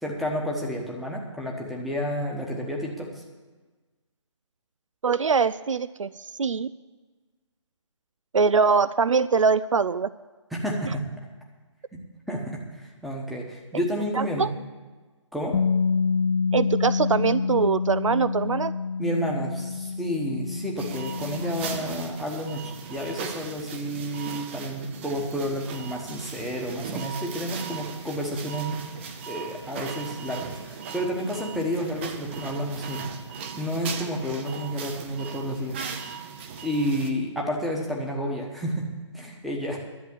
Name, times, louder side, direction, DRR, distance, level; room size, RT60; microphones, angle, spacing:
voice 1, 0.0-3.1 10.5-11.0 11.9-12.0 12.3-14.5 15.3-15.6 19.0-28.8 29.3-35.9 36.6-38.9 39.1-39.8, equal, ahead, -1 dB, 1.1 m, -30 dB
voice 2, 5.0-6.7 8.3-10.1 14.1-14.5 16.5-18.7, right 5 dB, 85° right, 16 dB, 0.4 m, -23 dB
Bass guitar, 15.5-21.8, left 5 dB, 50° left, 0.4 m, -27 dB
sound 1, 20.8-37.1, right 6 dB, 25° right, 0.7 m, -38 dB
11.0 x 7.5 x 8.6 m, 1.3 s
figure-of-eight pair, 150°, 16 cm